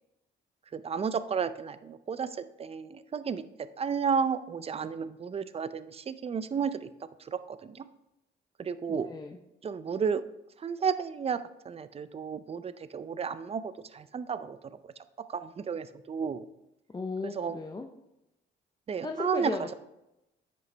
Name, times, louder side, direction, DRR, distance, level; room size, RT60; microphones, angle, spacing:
voice 1, 0.7-2.3 2.6-3.4 3.8-6.9 7.3-7.9 8.6-9.1 9.6-10.2 10.6-11.4 11.7-14.6 15.3-16.4 17.4-17.5 18.9-19.7, right 6 dB, 30° right, 13 dB, 0.4 m, -32 dB
voice 2, 8.9-9.4 16.9-17.9 19.0-19.7, left 3 dB, 20° left, 4 dB, 0.6 m, -36 dB
9.3 x 5.3 x 3.3 m, 0.90 s
cardioid pair, 90°, 20 cm